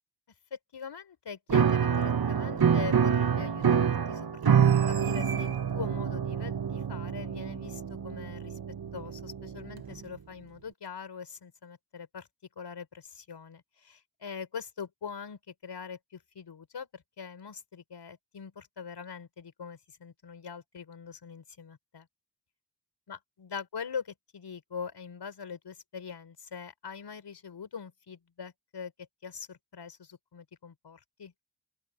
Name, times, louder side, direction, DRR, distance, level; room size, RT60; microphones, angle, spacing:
voice 1, 0.5-8.6 8.9-12.3 12.6-22.1 23.1-28.9 29.2-31.3, left 6 dB, 80° left, 5.3 m, -43 dB
Piano, 1.5-10.0, right 7 dB, 60° right, 1.6 m, -27 dB
open air
cardioid pair, 45°, 40 cm